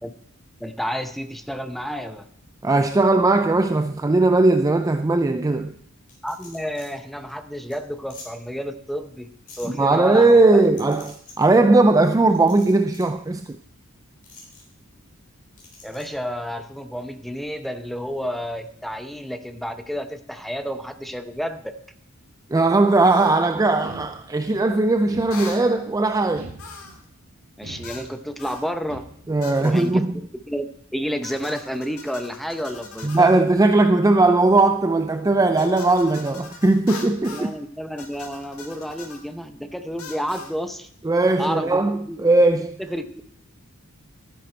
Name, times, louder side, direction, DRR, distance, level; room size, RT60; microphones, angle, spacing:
voice 1, 0.6-2.3 6.2-9.3 9.6-10.7 15.8-21.7 27.6-29.1 29.6-30.6 30.9-33.5 37.2-40.9 41.4-42.3 42.8-43.2, equal, ahead, 0.8 m, -30 dB
voice 2, 2.6-5.7 9.8-13.6 22.5-26.5 29.3-30.1 33.0-37.5 41.0-42.8, right 2 dB, 15° right, 0.4 m, -18 dB
sound 1, 6.1-6.9 7.3-7.4 7.7-7.8 8.1-8.3 9.5-9.7 10.7-11.3 12.3-13.1 14.2-14.6 15.6-16.1, left 3 dB, 40° left, 4.6 m, -45 dB
sound 2, 23.1-23.4 25.3-25.7 26.6-27.0 27.8-28.1 28.4-28.7 29.4-29.9 31.2-33.3 35.6-37.5 38.0-39.2 40.0-40.5, left 4 dB, 80° left, 2.2 m, -41 dB
sound 3, 23.8-24.6 25.1-25.8 26.4-27.1 27.6-28.4 28.9-29.5, right 1 dB, 70° right, 2.3 m, -42 dB
12.5 x 10.0 x 4.5 m
head